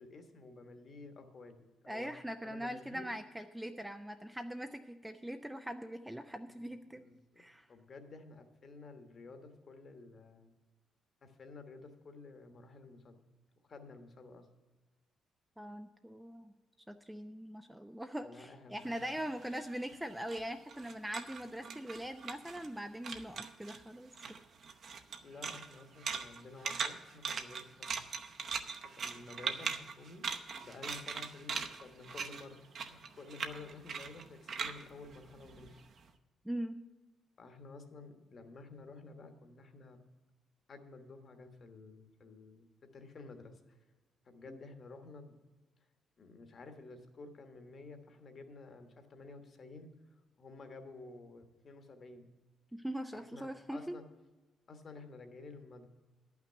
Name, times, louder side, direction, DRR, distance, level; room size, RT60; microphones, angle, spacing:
voice 1, 0.0-2.1 2.4-3.1 6.5-7.4 7.7-10.5 11.2-13.2 13.7-14.5 18.2-19.0 25.1-27.9 28.8-30.2 30.6-35.8 37.4-40.0 40.7-43.8 44.2-45.3 46.2-52.3 53.1-54.0 54.7-55.9, left 3 dB, 35° left, 7 dB, 1.2 m, -52 dB
voice 2, 1.9-7.0 7.4-7.7 15.6-16.5 16.9-24.1 36.4-36.8 44.5-44.6 52.7-53.9, equal, 5° right, 7 dB, 0.4 m, -42 dB
sound 1, 18.8-22.8 23.0-23.8 24.1-36.0, right 5 dB, 45° right, 0.8 m, -41 dB
11.0 x 5.9 x 7.9 m, 1.2 s
cardioid pair, 155°, 0 cm